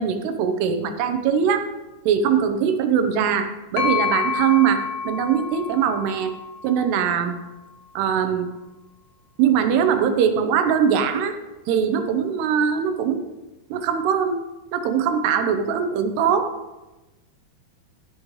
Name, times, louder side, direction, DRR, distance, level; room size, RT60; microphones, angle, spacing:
voice 1, 0.0-1.7 2.1-6.3 6.6-7.4 8.0-8.5 9.4-11.3 11.7-13.3 13.7-14.4 14.7-16.5, right 7 dB, 80° right, 8 dB, 2.7 m, -21 dB
sound 1, 3.8-7.5, left 6 dB, 60° left, 2.8 m, -29 dB
14.0 x 10.0 x 3.1 m, 1.1 s
omnidirectional pair, 4.9 m